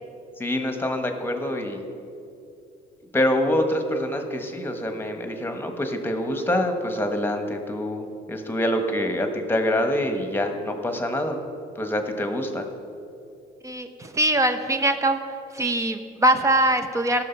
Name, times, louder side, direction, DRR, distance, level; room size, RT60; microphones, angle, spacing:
voice 1, 0.4-1.8 3.1-11.4 11.7-12.7, left 1 dB, 10° left, 5 dB, 1.3 m, -26 dB
voice 2, 13.6-15.2 15.5-17.2, right 1 dB, 20° right, 8 dB, 0.9 m, -22 dB
17.5 x 6.3 x 4.5 m, 2.5 s
cardioid pair, 110°, 17 cm